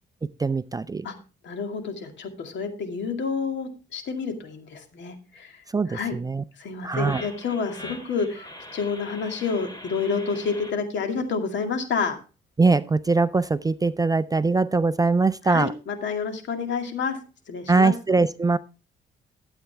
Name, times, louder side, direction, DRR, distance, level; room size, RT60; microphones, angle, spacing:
voice 1, 0.4-1.1 5.7-6.4 6.8-7.2 12.6-15.7 17.7-18.6, right 3 dB, 20° right, 15 dB, 0.4 m, -22 dB
voice 2, 1.4-6.2 6.6-12.2 15.4-17.2 17.5-17.9, left 5 dB, 65° left, 5 dB, 2.2 m, -29 dB
sound 1, 6.9-10.7, left 1 dB, 20° left, 2.8 m, -42 dB
12.5 x 8.2 x 3.4 m, 0.32 s
cardioid pair, 90°, 20 cm